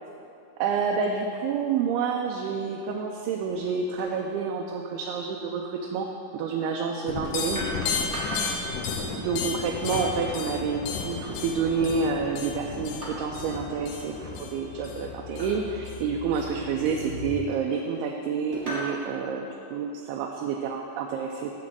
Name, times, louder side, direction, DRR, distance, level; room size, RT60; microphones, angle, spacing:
voice 1, 0.6-6.1 6.3-7.7 9.2-21.5, right 5 dB, 80° right, 1 dB, 2.4 m, -29 dB
sound 1, 3.5-3.7 4.0-4.2 5.9-6.0 7.2-8.6 9.4-10.2 11.8-12.2 13.0-13.6 13.9-14.2 15.4-15.6 16.2-16.3 17.2-18.0 18.5-19.0, equal, 50° right, 0.4 m, -38 dB
sound 2, 7.1-17.4, left 5 dB, 85° left, 1.9 m, -34 dB
10.5 x 4.4 x 7.5 m, 2.6 s
omnidirectional pair, 4.8 m